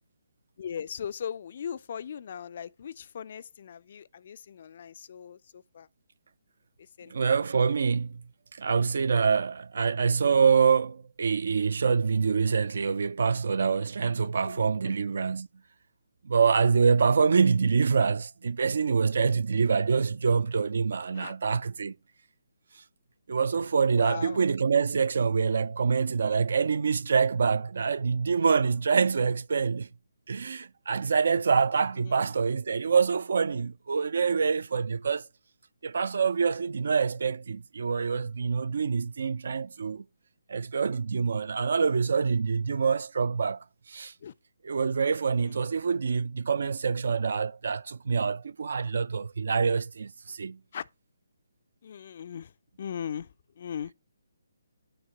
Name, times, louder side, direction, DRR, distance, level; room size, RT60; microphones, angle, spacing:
voice 1, 0.6-5.9 7.0-7.1 14.2-14.9 21.1-21.3 24.0-24.4 32.1-32.2 44.2-44.3 45.4-45.7 50.7-50.8 51.8-52.5 52.8-53.3 53.6-53.9, left 8 dB, 40° left, 0.3 m, -39 dB
voice 2, 7.1-8.2 8.5-15.5 16.2-21.9 22.8-22.9 23.3-29.9 30.3-35.3 35.8-40.0 40.5-44.1 44.6-50.6, right 5 dB, 50° right, 0.3 m, -26 dB
9.0 x 3.1 x 6.5 m
figure-of-eight pair, 140°, 0 cm